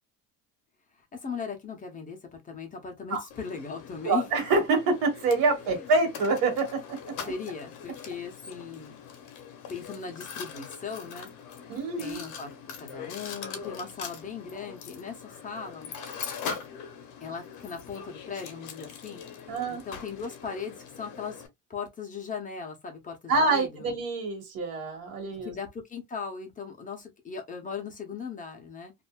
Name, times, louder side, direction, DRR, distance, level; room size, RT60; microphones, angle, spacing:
voice 1, 1.1-4.2 7.3-9.0 9.7-11.3 12.0-12.5 12.8-15.9 17.2-19.2 19.7-21.4 21.7-23.9 25.4-28.9, left 5 dB, 25° left, 0.9 m, -38 dB
Mechanisms, 3.3-21.5, left 6 dB, 65° left, 0.9 m, -42 dB
voice 2, 4.0-7.0 7.2-7.3 11.7-12.2 19.5-19.8 23.3-25.5, right 3 dB, 80° right, 1.6 m, -26 dB
2.6 x 2.6 x 2.3 m
cardioid pair, 135°, 33 cm